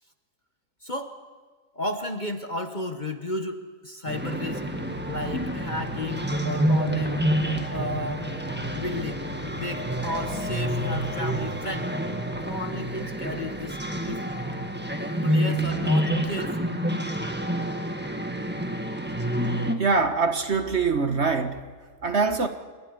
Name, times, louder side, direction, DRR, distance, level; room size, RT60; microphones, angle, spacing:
voice 1, 0.8-1.2 1.7-4.6 5.1-7.2 7.7-8.3 8.6-9.2 9.5-12.0 12.4-13.8 14.0-14.3 15.2-16.7, left 1 dB, 30° left, 6 dB, 1.2 m, -33 dB
sound 1, 4.1-19.7, right 1 dB, 5° right, 1.4 m, -28 dB
sound 2, 4.7-11.8, left 7 dB, 90° left, 1.8 m, -40 dB
voice 2, 19.8-21.6 22.0-22.5, right 4 dB, 45° right, 7 dB, 1.4 m, -23 dB
28.0 x 13.0 x 9.9 m, 1.5 s
omnidirectional pair, 1.8 m